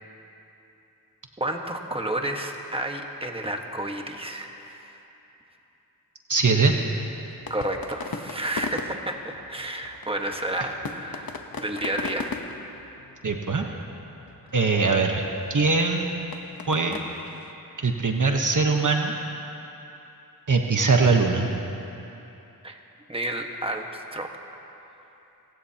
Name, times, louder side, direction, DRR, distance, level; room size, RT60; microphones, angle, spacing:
voice 1, 1.4-5.0 7.5-12.3 22.6-22.8 23.1-24.3 24.6-24.7, right 1 dB, 15° right, 2 dB, 1.5 m, -31 dB
voice 2, 6.3-6.7 13.2-13.7 14.5-15.2 15.5-16.4 16.7-17.0 17.8-19.1 20.5-21.5, right 4 dB, 60° right, 2 dB, 1.2 m, -22 dB
sound 1, 7.3-17.5, left 4 dB, 75° left, 1.0 m, -39 dB
28.0 x 16.0 x 2.9 m, 3.0 s
wide cardioid pair, 50°, 36 cm